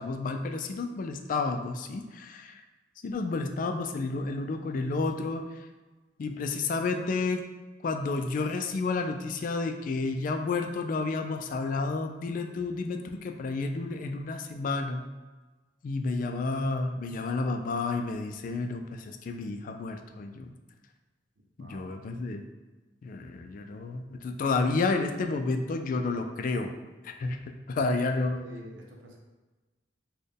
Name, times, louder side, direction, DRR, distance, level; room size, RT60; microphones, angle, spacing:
voice 1, 0.0-2.6 3.0-5.4 6.2-7.4 7.8-15.0 15.8-20.5 21.6-22.4 23.0-26.7 27.0-28.4, left 3 dB, 45° left, 5 dB, 0.3 m, -31 dB
voice 2, 21.4-21.9 27.8-29.2, equal, 85° right, -1 dB, 0.6 m, -48 dB
4.2 x 2.2 x 3.3 m, 1.2 s
head